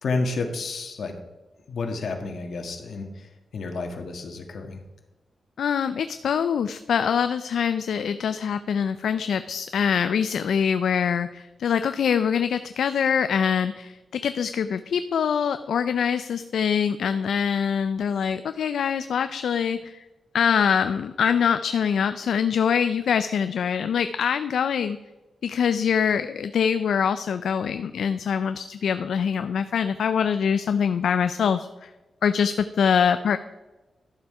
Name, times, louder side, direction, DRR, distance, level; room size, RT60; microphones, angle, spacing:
voice 1, 0.0-1.1 1.7-4.8, left 3 dB, 65° left, 4 dB, 1.7 m, -30 dB
voice 2, 5.6-20.0 20.3-25.0 25.4-31.9 32.2-33.4, left 7 dB, 85° left, 10 dB, 0.4 m, -24 dB
12.0 x 7.1 x 4.8 m, 1.1 s
wide cardioid pair, 125°, 0 cm